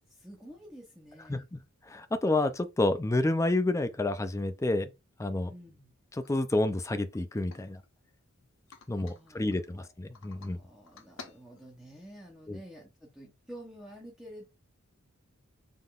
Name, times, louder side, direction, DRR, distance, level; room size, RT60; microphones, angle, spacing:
voice 1, 0.0-1.5 5.4-5.9 8.9-9.9 10.2-14.4, equal, 5° right, 0.9 m, -50 dB
voice 2, 1.3-1.6 1.8-4.9 5.2-5.5 6.1-7.8 8.9-10.6 12.5-12.6, left 2 dB, 15° left, 0.4 m, -29 dB
sound 1, 6.2-6.3 6.7-6.8 7.1-8.2 8.7-9.6 10.1-10.5 10.8-12.0, left 4 dB, 70° left, 0.9 m, -52 dB
5.5 x 3.7 x 2.4 m
head